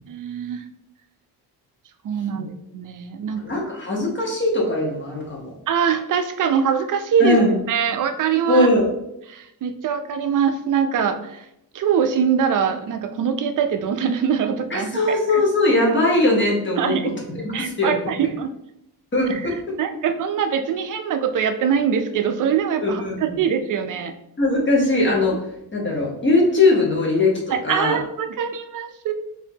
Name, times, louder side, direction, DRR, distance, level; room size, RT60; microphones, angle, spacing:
voice 1, 0.1-0.6 2.0-3.4 5.7-7.4 7.7-8.7 9.3-11.5 11.7-15.4 16.8-17.1 17.5-18.5 19.3-19.4 19.8-24.1 27.5-29.1, right 7 dB, 50° right, 8 dB, 0.4 m, -23 dB
voice 2, 3.4-5.5 7.2-7.6 8.5-8.9 14.7-17.0 17.4-18.1 19.1-19.7 22.8-23.4 24.4-25.4 25.7-28.0, left 2 dB, 30° left, -2 dB, 1.0 m, -20 dB
4.9 x 2.7 x 2.7 m, 0.82 s
cardioid pair, 125°, 40 cm